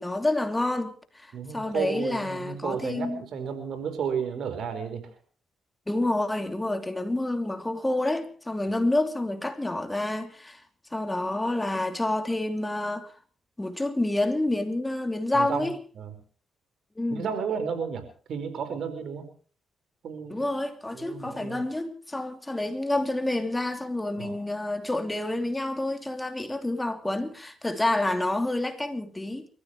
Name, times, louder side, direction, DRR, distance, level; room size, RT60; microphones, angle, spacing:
voice 1, 0.0-3.2 5.9-10.6 10.9-13.1 13.6-15.8 17.0-17.3 20.3-29.5, left 2 dB, 15° left, 2.9 m, -28 dB
voice 2, 1.3-5.1 8.7-8.8 15.3-15.7 15.9-16.1 17.1-19.3 20.0-20.5 20.9-21.6 24.2-24.4, right 6 dB, 70° right, 4.8 m, -33 dB
29.5 x 15.0 x 3.1 m
supercardioid pair, 60°, 0 cm